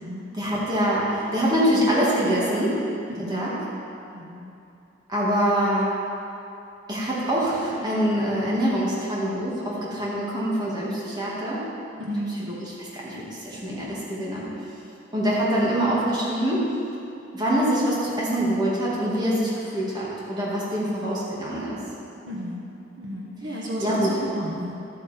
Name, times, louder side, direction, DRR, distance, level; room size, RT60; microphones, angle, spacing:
voice 1, 0.3-2.8 3.2-3.6 5.1-6.0 6.9-11.7 12.3-14.5 15.1-16.7 17.3-21.8 23.4-24.2, equal, 25° right, -7 dB, 2.3 m, -25 dB
voice 2, 3.1-3.5 4.1-4.5 12.0-12.4 22.2-22.6 23.0-24.7, equal, 70° right, -3 dB, 1.5 m, -32 dB
12.5 x 7.7 x 4.5 m, 2.8 s
head